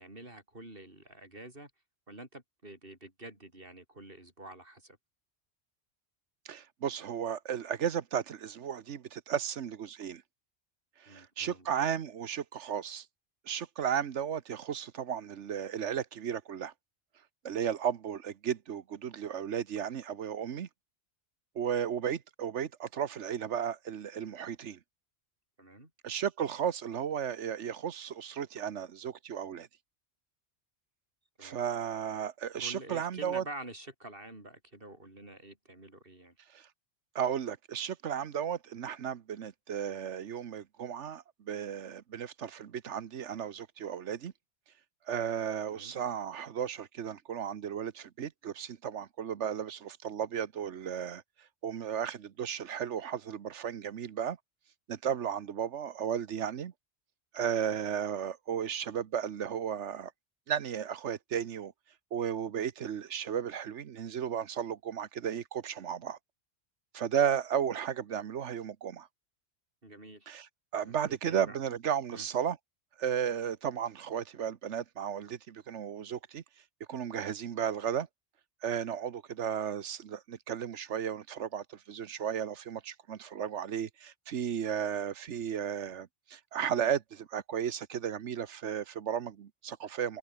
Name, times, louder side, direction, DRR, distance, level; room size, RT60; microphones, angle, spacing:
voice 1, 0.0-1.7 2.1-5.0 11.1-11.7 25.6-25.9 31.4-31.6 32.6-36.4 45.7-45.9 69.8-70.3 70.8-71.6 72.1-72.3, right 1 dB, 50° right, 6.1 m, -48 dB
voice 2, 6.4-10.2 11.0-13.0 13.5-16.7 17.4-20.7 21.5-24.8 26.0-29.7 31.4-33.4 36.5-36.7 37.1-44.3 45.1-51.2 51.6-54.4 54.9-56.7 57.3-60.1 60.5-61.7 62.1-66.2 66.9-69.1 70.3-72.6 73.0-76.4 76.9-78.1 78.6-90.2, right 8 dB, 85° right, 1.3 m, -34 dB
omnidirectional pair, 1.2 m